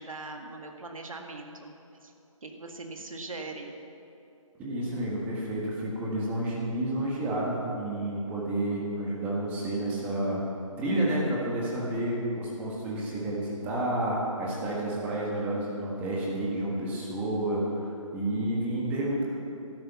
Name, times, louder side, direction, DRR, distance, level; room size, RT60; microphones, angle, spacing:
voice 1, 0.0-1.7 2.0-2.1 2.4-3.7, right 3 dB, 80° right, 3 dB, 1.9 m, -40 dB
voice 2, 4.6-10.4 10.8-19.2, right 1 dB, 10° right, -4 dB, 1.5 m, -30 dB
12.5 x 10.5 x 7.1 m, 2.7 s
hypercardioid pair, 165°, 17 cm